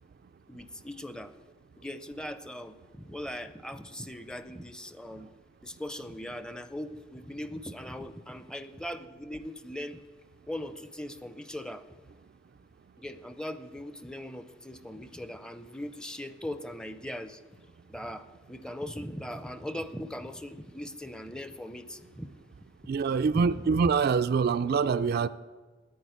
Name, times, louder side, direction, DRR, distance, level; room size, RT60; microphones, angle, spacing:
voice 1, 0.5-1.3 1.8-5.3 5.6-10.0 10.5-11.9 13.0-17.4 17.9-22.3 23.3-23.8, left 1 dB, 5° left, 0.5 m, -40 dB
voice 2, 22.9-25.3, right 5 dB, 50° right, 0.3 m, -25 dB
9.5 x 9.3 x 9.9 m
head